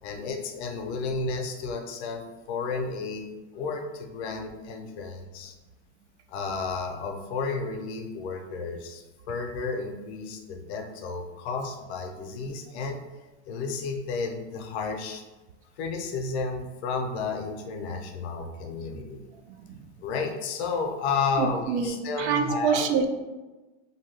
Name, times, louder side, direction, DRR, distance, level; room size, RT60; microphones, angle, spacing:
voice 1, 0.0-3.3 3.5-5.5 6.3-13.0 13.5-15.2 15.8-19.3 20.0-22.9, left 4 dB, 70° left, 4 dB, 0.6 m, -32 dB
voice 2, 19.5-19.8 21.4-23.1, right 6 dB, 75° right, 6 dB, 0.5 m, -26 dB
2.7 x 2.2 x 3.1 m, 1.2 s
supercardioid pair, 160°, 34 cm